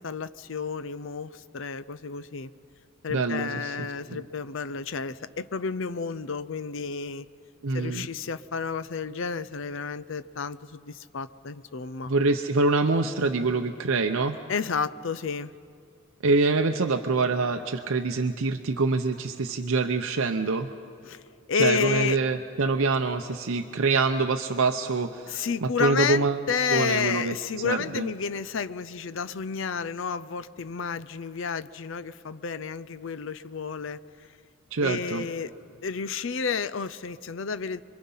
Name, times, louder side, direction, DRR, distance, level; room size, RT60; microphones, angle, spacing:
voice 1, 0.0-2.5 3.0-7.3 7.7-12.1 14.5-15.5 21.0-21.2 21.5-22.2 25.3-34.0 34.8-35.5 35.8-37.8, left 6 dB, 65° left, 15 dB, 0.6 m, -31 dB
voice 2, 3.1-3.7 7.6-8.1 12.1-14.4 16.2-20.7 21.6-26.4 26.7-28.0 34.7-35.3, right 3 dB, 80° right, 5 dB, 0.7 m, -25 dB
27.0 x 23.0 x 5.6 m, 2.4 s
head